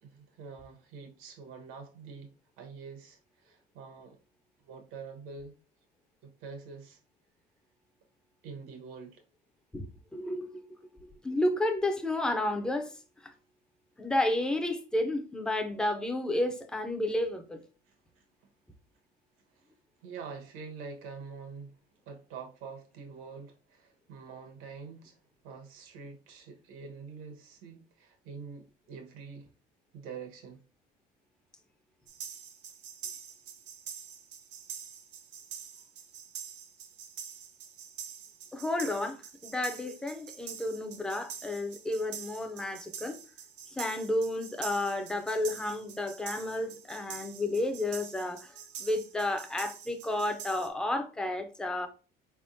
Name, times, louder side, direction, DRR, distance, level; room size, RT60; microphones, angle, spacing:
voice 1, 0.0-4.2 4.7-5.5 6.2-7.0 8.4-9.2 17.9-18.2 19.6-19.7 20.0-21.7 22.1-25.2 25.4-29.5 29.9-30.6, right 5 dB, 80° right, 1.2 m, -46 dB
voice 2, 10.1-10.6 11.0-12.9 13.2-13.3 14.0-17.6 38.5-39.2 39.4-43.2 43.7-51.9, left 1 dB, 5° left, 0.4 m, -31 dB
sound 1, 32.1-50.7, right 8 dB, 60° right, 0.8 m, -45 dB
4.7 x 3.5 x 2.6 m
cardioid pair, 175°, 21 cm